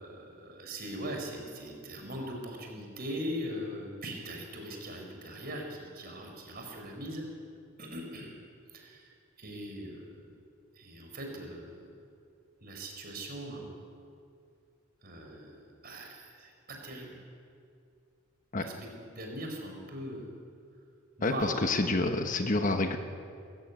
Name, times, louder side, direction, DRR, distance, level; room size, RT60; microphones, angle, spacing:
voice 1, 0.0-7.3 7.8-8.3 8.7-9.1 9.4-10.1 10.8-11.8 12.6-13.8 15.0-16.5 16.8-17.2 18.6-20.4 21.2-21.6, equal, 45° right, 2 dB, 4.6 m, -40 dB
voice 2, 21.2-23.0, left 2 dB, 40° left, 6 dB, 1.2 m, -28 dB
21.5 x 14.0 x 9.5 m, 2.4 s
head